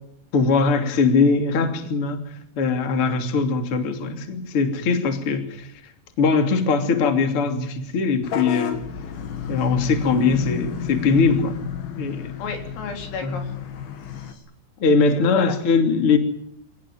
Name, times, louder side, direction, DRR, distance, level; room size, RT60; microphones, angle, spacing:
voice 1, 0.3-5.9 6.2-8.8 9.5-11.6 12.0-12.4 13.2-13.4 14.8-16.2, left 4 dB, 35° left, 6 dB, 2.8 m, -21 dB
Vehicle horn car horn honking / Bus, 8.2-14.3, left 8 dB, 55° left, 3.1 m, -31 dB
voice 2, 12.4-13.5 14.1-14.4 14.8-15.5, left 4 dB, 80° left, 4 dB, 6.5 m, -34 dB
25.5 x 19.0 x 9.3 m, 0.72 s
omnidirectional pair, 6.0 m